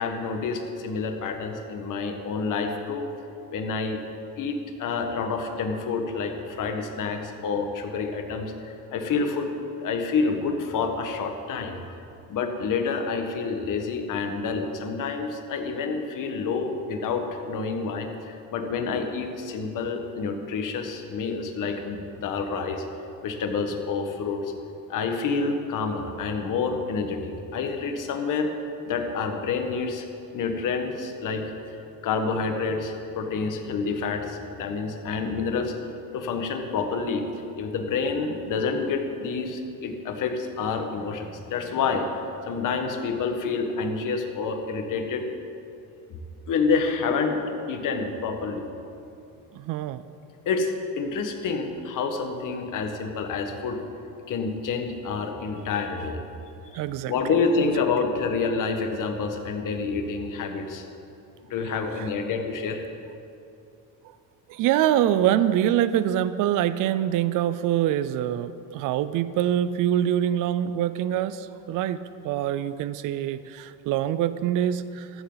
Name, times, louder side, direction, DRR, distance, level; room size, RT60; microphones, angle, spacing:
voice 1, 0.0-3.1 3.5-4.0 4.4-9.5 9.8-11.8 12.3-22.8 23.2-24.5 24.9-28.5 28.9-30.1 30.3-31.4 32.0-35.7 36.1-37.2 37.6-42.1 42.5-45.2 46.1-46.2 46.5-47.4 47.7-48.7 50.4-53.8 54.3-56.2 57.1-60.8 61.5-62.8, left 4 dB, 50° left, 5 dB, 1.6 m, -28 dB
voice 2, 49.5-50.0 56.7-57.1 61.7-62.1 64.5-75.2, right 11 dB, 55° right, 14 dB, 0.5 m, -25 dB
14.5 x 14.0 x 4.0 m, 2.6 s
cardioid pair, 140°, 40 cm